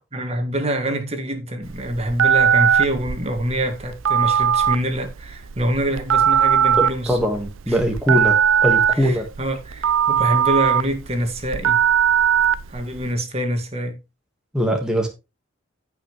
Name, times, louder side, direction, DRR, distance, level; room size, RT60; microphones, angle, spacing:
voice 1, 0.1-7.2 7.7-7.8 8.1-8.2 8.9-11.8 12.7-14.0, right 1 dB, 30° right, 1.9 m, -25 dB
Telephone, 1.6-13.1, right 8 dB, 80° right, 0.6 m, -19 dB
voice 2, 6.8-9.3 14.5-15.1, equal, 5° right, 1.6 m, -21 dB
15.5 x 5.8 x 3.1 m
head